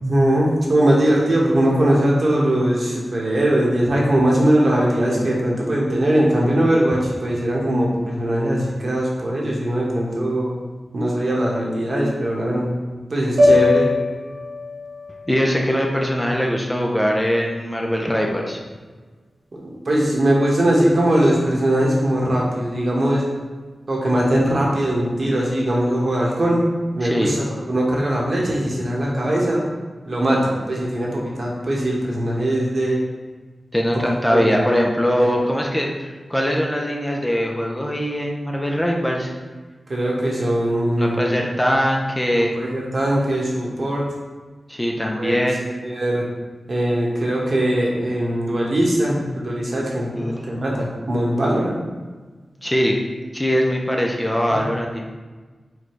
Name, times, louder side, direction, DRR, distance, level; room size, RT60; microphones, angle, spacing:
voice 1, 0.0-10.5 10.9-12.7 13.1-13.9 19.6-23.3 23.9-26.6 26.9-29.6 30.0-33.0 34.3-34.6 35.2-35.3 39.9-41.2 42.5-44.1 45.2-46.2 46.7-51.8, right 1 dB, 55° right, -3 dB, 1.0 m, -20 dB
sound 1, 13.4-17.6, left 2 dB, 85° right, 1.0 m, -23 dB
voice 2, 15.3-18.6 27.0-27.3 33.7-39.3 41.0-42.6 44.7-45.7 50.2-50.5 52.6-53.0 53.3-55.0, equal, 10° left, 0 dB, 0.5 m, -21 dB
4.7 x 2.2 x 4.5 m, 1.3 s
wide cardioid pair, 95°, 0 cm